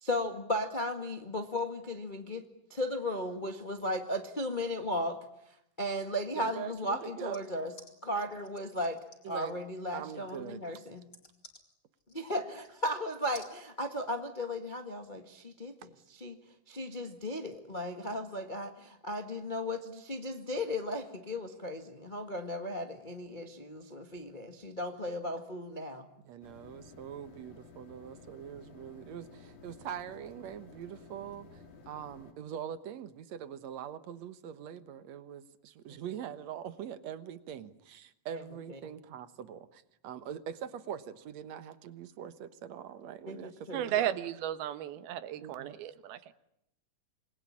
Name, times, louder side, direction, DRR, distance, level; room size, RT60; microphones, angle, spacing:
voice 1, 0.0-2.4 2.7-5.2 5.8-7.7 8.0-9.0 9.3-11.0 12.1-16.4 16.7-26.0 35.9-36.0 38.3-38.4 43.3-43.8, left 1 dB, 70° left, 5 dB, 0.4 m, -36 dB
voice 2, 6.4-7.4 9.2-9.6 9.9-10.6 26.2-31.6 31.9-44.1 45.4-45.8, right 9 dB, 60° right, 12 dB, 1.9 m, -43 dB
sound 1, 7.3-12.9 13.3-13.5, left 2 dB, 20° left, 4.1 m, -56 dB
sound 2, 26.4-32.3, left 4 dB, 45° left, 3.9 m, -54 dB
voice 3, 43.7-46.3, right 11 dB, 85° right, 12 dB, 3.1 m, -34 dB
27.5 x 21.0 x 10.0 m, 0.80 s
omnidirectional pair, 4.3 m